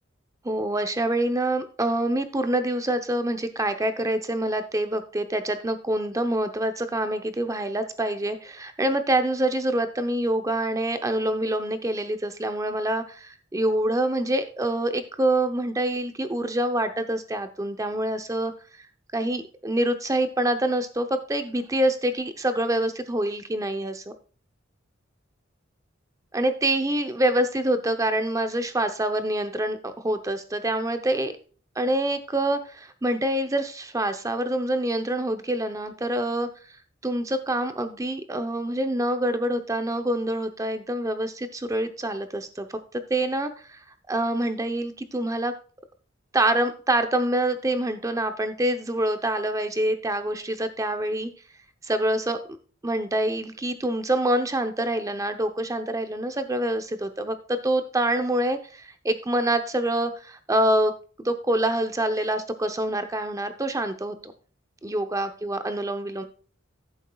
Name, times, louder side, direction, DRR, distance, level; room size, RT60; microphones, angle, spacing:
voice 1, 0.4-18.5 18.8-18.9 19.1-24.1 26.3-31.3 31.8-36.5 37.0-43.8 44.1-45.5 46.3-51.3 51.8-52.4 52.8-60.9 61.2-64.3 64.8-66.2, right 1 dB, 15° right, 8 dB, 0.7 m, -26 dB
12.5 x 7.1 x 2.3 m, 0.40 s
head